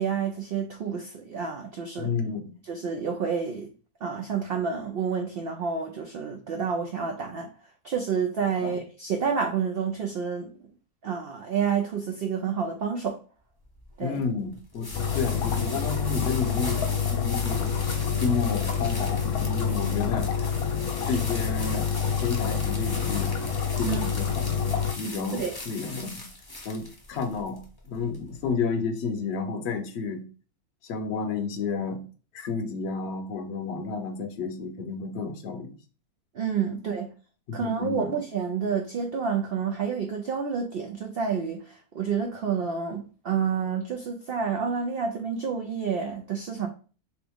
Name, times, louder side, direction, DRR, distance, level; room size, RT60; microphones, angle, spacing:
voice 1, 0.0-2.1 2.7-3.7 4.0-7.5 7.8-10.5 11.0-13.2 14.0-14.2 23.9-24.0 25.3-25.5 36.3-37.1 37.5-46.7, right 6 dB, 80° right, 0.5 m, -29 dB
voice 2, 2.0-2.5 8.6-8.8 14.0-17.7 18.2-20.3 21.1-21.9 22.2-26.3 26.6-30.3 30.8-32.0 32.3-35.7 37.5-38.1, left 5 dB, 55° left, 0.8 m, -31 dB
sound 1, 13.6-28.5, left 2 dB, 25° left, 0.5 m, -40 dB
sound 2, 14.9-24.9, left 7 dB, 75° left, 1.1 m, -27 dB
3.4 x 3.0 x 3.4 m
omnidirectional pair, 1.6 m